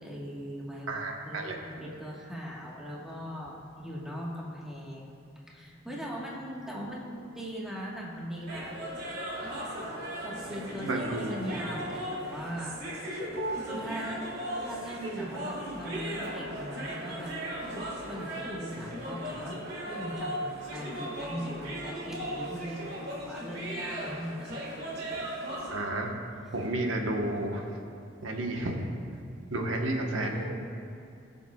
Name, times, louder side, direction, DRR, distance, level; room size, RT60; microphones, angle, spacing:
voice 1, 0.0-5.2 5.5-8.8 10.2-12.8 13.6-14.3 14.6-17.4 17.6-19.6 19.9-24.5 30.2-30.5, equal, 5° right, -4 dB, 1.3 m, -39 dB
voice 2, 0.9-1.6 10.8-11.6 15.9-16.0 18.8-18.9 25.7-26.1 26.5-27.6 28.2-28.9 29.5-30.4, right 1 dB, 85° right, 2 dB, 1.1 m, -31 dB
sound 1, 8.5-25.8, right 1 dB, 55° right, 2.1 m, -37 dB
21.0 x 7.0 x 2.3 m, 2.4 s
head